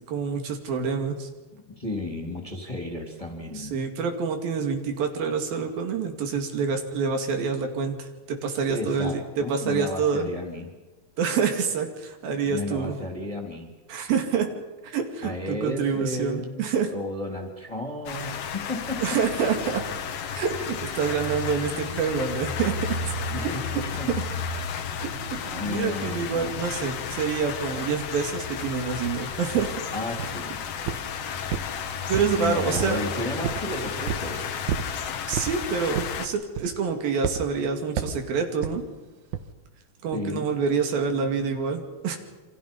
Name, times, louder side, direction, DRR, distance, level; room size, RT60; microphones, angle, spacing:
voice 1, 0.1-1.3 3.5-9.2 9.5-10.3 11.2-13.0 13.9-14.5 14.8-16.9 19.0-19.8 20.3-22.8 25.0-29.8 32.1-33.0 35.3-38.8 40.0-42.2, right 6 dB, 90° right, 4 dB, 4.2 m, -27 dB
voice 2, 1.8-3.8 8.7-10.7 12.5-13.7 15.2-19.2 23.3-24.1 24.9-25.3 25.5-26.6 29.9-30.6 32.4-34.6 40.1-40.5, left 1 dB, 10° left, 2 dB, 2.7 m, -33 dB
sound 1, 18.1-36.3, left 6 dB, 55° left, 2.0 m, -33 dB
sound 2, 29.6-29.7 30.2-30.5 30.9-31.1 31.5-32.4 32.8-33.0 33.4-33.7 34.1-34.3 34.7-34.9 35.3-35.6 35.9-36.2 36.6-36.9 37.2-37.4 38.0-38.2 38.6-38.8 39.3-39.5, right 8 dB, 65° right, 2.5 m, -30 dB
28.5 x 25.5 x 5.5 m, 1.2 s
omnidirectional pair, 4.0 m